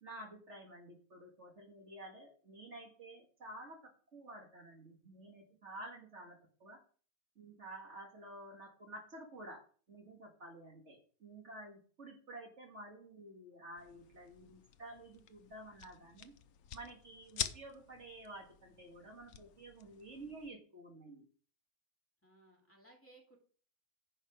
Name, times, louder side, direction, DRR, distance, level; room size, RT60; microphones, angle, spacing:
voice 1, 0.0-6.8 7.4-16.3 16.7-21.3, right 1 dB, 55° right, 1 dB, 2.0 m, -51 dB
sound 1, 13.8-20.5, left 10 dB, 80° left, 1.2 m, -47 dB
voice 2, 22.2-23.4, right 2 dB, 10° left, -2 dB, 2.8 m, -62 dB
10.0 x 5.5 x 4.9 m, 0.42 s
omnidirectional pair, 1.5 m